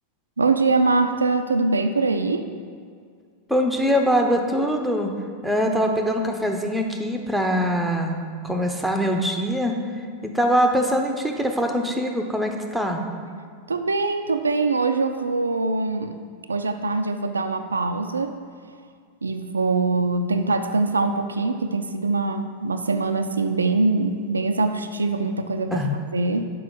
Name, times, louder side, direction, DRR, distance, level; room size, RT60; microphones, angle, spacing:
voice 1, 0.4-2.5 13.7-16.1 16.5-18.4 19.2-25.9 26.1-26.4, right 3 dB, 75° right, 7 dB, 0.3 m, -23 dB
voice 2, 3.5-5.1 5.4-8.2 8.4-9.8 10.2-13.0 25.7-25.9, equal, ahead, 2 dB, 0.7 m, -23 dB
6.1 x 5.1 x 6.2 m, 2.1 s
figure-of-eight pair, 90°, 0 cm